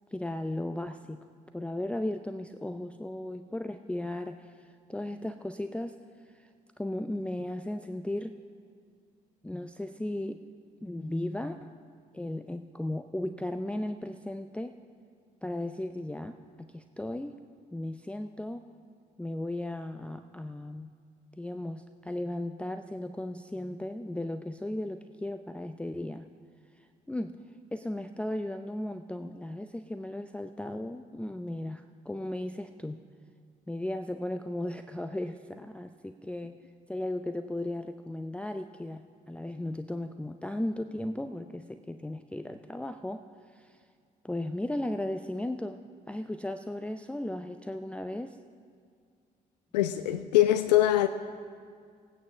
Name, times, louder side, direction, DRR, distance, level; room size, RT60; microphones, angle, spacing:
voice 1, 0.1-1.2 1.5-4.5 4.9-6.0 6.4-6.5 6.8-8.3 9.4-10.4 10.8-11.7 12.1-14.8 15.4-17.4 17.7-18.6 19.2-20.9 21.4-26.2 27.1-27.4 27.7-33.0 33.7-36.6 36.9-43.2 43.5-43.8 44.2-45.8 46.1-48.4, left 1 dB, 5° left, 7 dB, 0.5 m, -36 dB
voice 2, 49.7-51.1, left 13 dB, 80° left, 10 dB, 0.4 m, -23 dB
17.0 x 9.4 x 6.3 m, 2.1 s
figure-of-eight pair, 45°, 21 cm